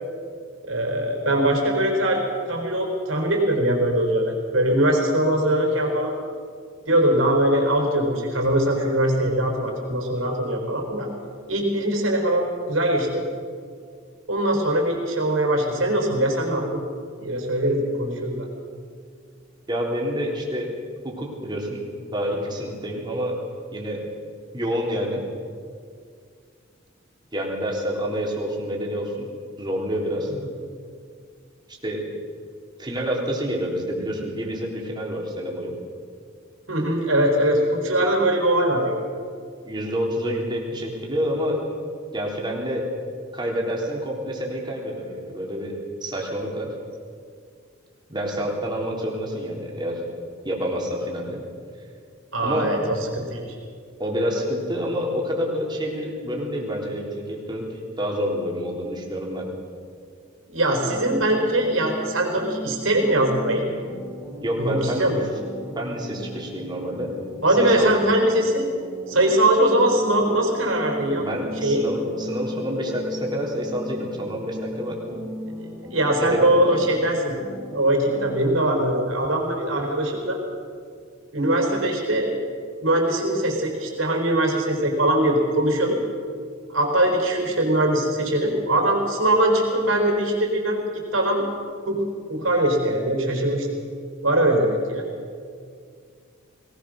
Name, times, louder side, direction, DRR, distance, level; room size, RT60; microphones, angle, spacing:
voice 1, 0.7-2.2 2.5-6.1 6.9-11.1 11.5-13.3 14.3-16.8 17.2-18.5 36.7-39.0 52.3-53.6 60.5-63.6 64.6-65.3 67.4-68.7 69.1-71.2 71.6-71.8 75.9-77.3 77.7-80.4 81.3-82.4 82.8-86.0 86.7-90.8 91.1-91.4 91.9-92.0 92.3-93.7 94.2-95.0, right 1 dB, 75° right, 2 dB, 4.5 m, -21 dB
voice 2, 19.7-20.7 21.0-21.8 22.1-23.4 23.7-24.0 24.5-25.2 27.3-29.3 29.6-30.3 31.7-32.1 32.8-35.7 39.6-41.6 42.1-42.9 43.3-46.7 48.1-50.0 50.4-51.4 52.4-52.7 54.0-57.7 58.0-59.5 64.4-65.0 65.8-67.1 67.6-67.9 71.2-75.2 76.2-76.5, equal, 20° right, -2 dB, 3.7 m, -28 dB
sound 1, 60.8-78.8, left 1 dB, 5° right, 3.0 m, -37 dB
22.0 x 19.0 x 6.6 m, 2.2 s
head